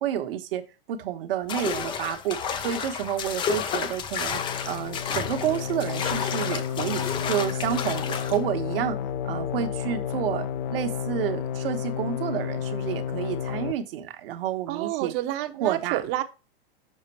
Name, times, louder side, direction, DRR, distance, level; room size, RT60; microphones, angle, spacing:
voice 1, 0.0-9.0 9.2-15.1 15.6-16.0, right 10 dB, 70° right, 1.2 m, -30 dB
sound 1, 1.5-8.4, left 7 dB, 15° left, 0.4 m, -31 dB
sound 2, 4.3-13.7, left 8 dB, 55° left, 0.7 m, -31 dB
voice 2, 14.7-16.2, right 14 dB, 40° right, 0.8 m, -29 dB
6.7 x 4.9 x 4.4 m
hypercardioid pair, 135°, 30 cm